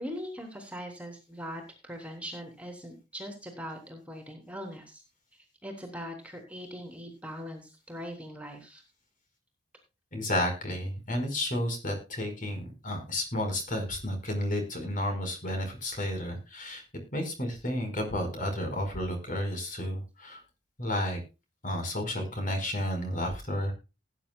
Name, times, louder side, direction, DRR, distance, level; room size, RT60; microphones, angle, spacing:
voice 1, 0.0-5.0 5.6-8.8, equal, 5° right, 4 dB, 3.4 m, -41 dB
voice 2, 10.1-16.8 17.1-20.4 20.8-21.2 21.6-23.7, left 1 dB, 40° left, 5 dB, 4.8 m, -32 dB
19.0 x 9.8 x 2.3 m, 0.29 s
head